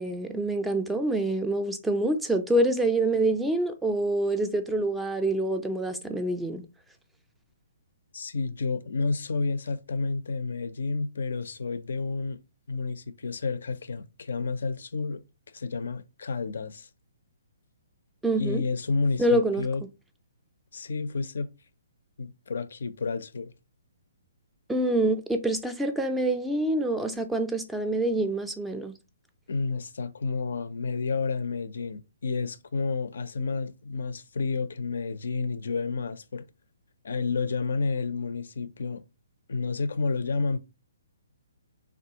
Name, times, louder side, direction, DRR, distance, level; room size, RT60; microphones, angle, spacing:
voice 1, 0.0-6.7 18.2-18.6 19.2-19.7 24.7-28.9, right 1 dB, 5° right, 0.3 m, -26 dB
voice 2, 8.1-12.4 12.7-15.2 15.5-16.9 18.4-19.8 20.7-21.5 22.2-23.5 29.5-36.4 37.0-39.0 39.5-40.6, left 4 dB, 70° left, 0.4 m, -30 dB
3.4 x 2.3 x 2.7 m
figure-of-eight pair, 135°, 0 cm